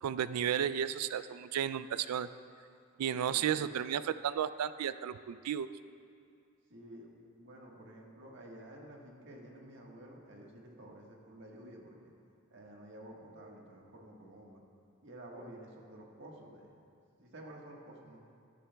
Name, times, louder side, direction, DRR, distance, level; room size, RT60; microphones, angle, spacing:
voice 1, 0.0-2.3 3.0-5.7, right 9 dB, 90° right, 14 dB, 0.3 m, -33 dB
voice 2, 3.3-3.7 6.7-12.0 12.5-14.6 15.0-16.7 17.2-18.2, right 1 dB, 55° right, -1 dB, 1.4 m, -51 dB
13.5 x 12.5 x 2.3 m, 2.4 s
head